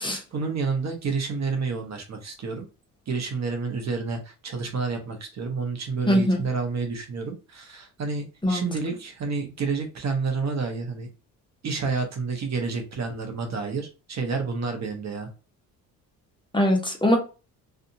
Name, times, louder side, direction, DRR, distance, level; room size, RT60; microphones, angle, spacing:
voice 1, 0.0-2.7 3.1-11.1 11.6-15.3, right 4 dB, 45° right, 4 dB, 0.8 m, -29 dB
voice 2, 6.1-6.4 8.4-8.7 16.5-17.2, equal, 10° left, 1 dB, 0.9 m, -21 dB
2.6 x 2.4 x 2.7 m, 0.32 s
supercardioid pair, 75°, 38 cm